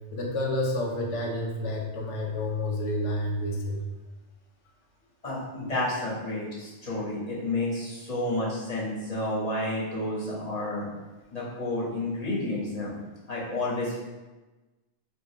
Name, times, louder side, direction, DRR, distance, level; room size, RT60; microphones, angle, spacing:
voice 1, 0.1-3.8, left 1 dB, 75° left, 0 dB, 1.1 m, -29 dB
voice 2, 5.2-10.9 11.3-12.9 13.3-14.0, left 1 dB, 35° left, -7 dB, 1.2 m, -30 dB
5.2 x 2.6 x 3.3 m, 1.2 s
omnidirectional pair, 1.2 m